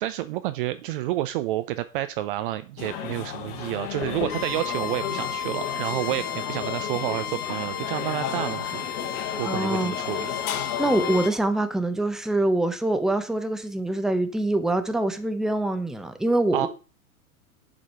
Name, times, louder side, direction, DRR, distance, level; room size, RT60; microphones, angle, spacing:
voice 1, 0.0-8.9 9.3-10.3 16.5-16.7, right 14 dB, 40° right, 0.5 m, -29 dB
sound 1, 2.8-11.3, left 9 dB, 45° left, 1.4 m, -33 dB
Bowed string instrument, 4.3-11.3, left 8 dB, 85° left, 0.7 m, -33 dB
voice 2, 9.4-9.9 10.8-16.7, right 2 dB, ahead, 0.7 m, -24 dB
7.7 x 4.9 x 5.7 m
figure-of-eight pair, 100°, 43 cm